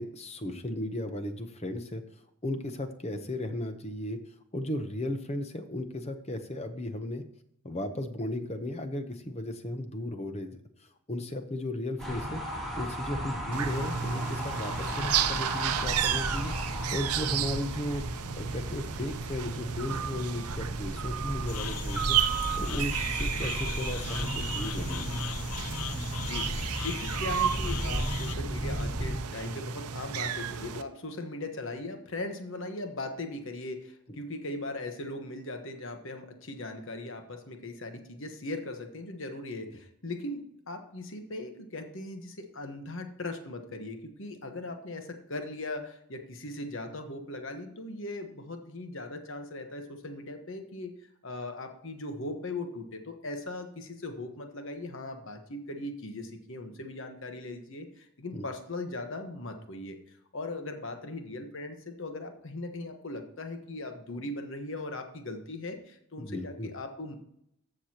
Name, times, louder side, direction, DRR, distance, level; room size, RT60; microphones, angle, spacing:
voice 1, 0.0-2.0 2.4-4.2 4.5-7.2 7.6-12.4 12.8-18.0 18.4-22.2 22.6-25.0 58.3-58.4 66.2-66.7, left 1 dB, 30° left, 8 dB, 0.8 m, -35 dB
sound 1, 12.0-29.2, equal, ahead, 2.5 m, -35 dB
sound 2, 13.5-30.8, right 8 dB, 90° right, 0.7 m, -33 dB
sound 3, 21.5-28.4, left 10 dB, 85° left, 0.5 m, -40 dB
voice 2, 26.2-60.0 60.3-67.2, left 2 dB, 60° left, 6 dB, 1.2 m, -39 dB
14.0 x 6.6 x 2.9 m, 0.73 s
head